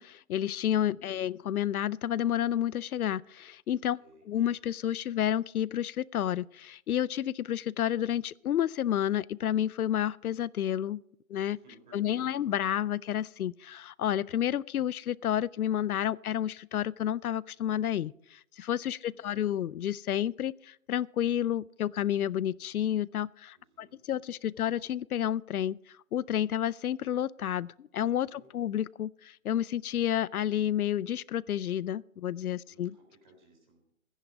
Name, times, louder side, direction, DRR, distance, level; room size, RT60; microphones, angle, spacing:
voice 1, 0.0-4.0 4.3-11.0 11.3-11.6 11.9-25.8 26.1-33.0, left 11 dB, 85° left, 0.5 m, -30 dB
voice 2, 0.7-1.3 4.0-4.3 11.5-12.3 19.0-19.6 23.5-24.0 28.2-28.5 32.7-33.9, right 1 dB, 35° right, 4.0 m, -59 dB
15.0 x 10.5 x 5.2 m
hypercardioid pair, 170°, 43 cm